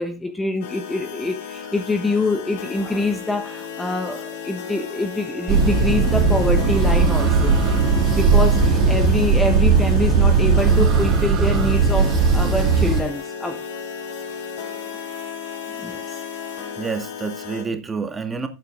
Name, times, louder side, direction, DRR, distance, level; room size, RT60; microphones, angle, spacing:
voice 1, 0.0-7.6 8.1-13.6 15.7-16.2, left 2 dB, 10° left, 1.2 m, -25 dB
sound 1, 0.6-17.6, left 7 dB, 50° left, 3.1 m, -34 dB
sound 2, 5.5-13.0, right 5 dB, 30° right, 2.1 m, -17 dB
voice 2, 16.8-18.5, right 4 dB, 15° right, 2.4 m, -29 dB
18.0 x 9.1 x 2.5 m
figure-of-eight pair, 90°, 0 cm